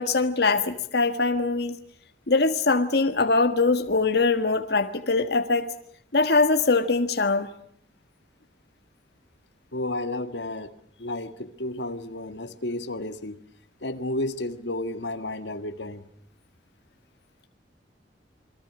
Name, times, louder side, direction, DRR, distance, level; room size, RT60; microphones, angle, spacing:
voice 1, 0.0-1.7 2.3-5.7 6.1-7.5, left 3 dB, 65° left, 1.5 m, -22 dB
voice 2, 9.7-13.4 13.8-16.1, left 1 dB, 80° left, 1.8 m, -32 dB
29.0 x 23.5 x 6.1 m
head